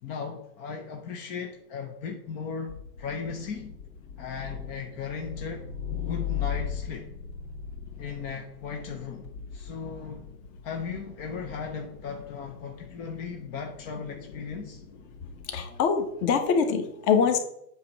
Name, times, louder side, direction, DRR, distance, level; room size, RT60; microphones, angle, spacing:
voice 1, 0.0-3.7 4.2-7.1 8.0-9.3 9.5-10.2 10.6-14.8, left 5 dB, 20° left, 3 dB, 0.4 m, -37 dB
sound 1, 2.7-15.5, left 8 dB, 80° left, 2.6 m, -39 dB
voice 2, 15.5-17.4, left 6 dB, 40° left, 6 dB, 1.3 m, -24 dB
8.0 x 3.2 x 6.1 m, 0.75 s
hypercardioid pair, 125°, 49 cm